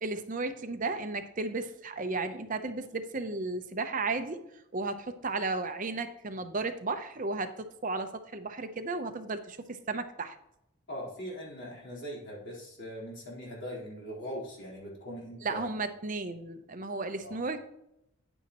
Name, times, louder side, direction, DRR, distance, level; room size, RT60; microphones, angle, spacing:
voice 1, 0.0-4.4 4.7-10.4 15.4-17.6, right 3 dB, 35° right, 8 dB, 0.7 m, -34 dB
voice 2, 10.9-15.6 17.2-17.4, equal, 55° left, -5 dB, 3.9 m, -41 dB
9.8 x 8.9 x 3.0 m, 0.81 s
head